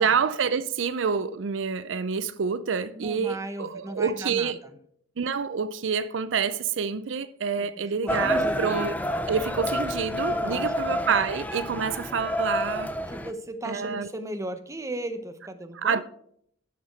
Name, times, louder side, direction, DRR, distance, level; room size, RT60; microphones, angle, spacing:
voice 1, 0.0-4.6 5.2-9.0 9.3-12.9 13.6-14.1 15.8-16.0, right 6 dB, 75° right, 0.5 m, -27 dB
voice 2, 2.9-4.8 7.5-7.7 8.0-8.8 10.3-11.3 13.1-16.0, right 1 dB, 15° right, 0.9 m, -37 dB
sound 1, 8.1-13.3, left 1 dB, 10° left, 0.7 m, -29 dB
11.0 x 7.0 x 4.5 m
head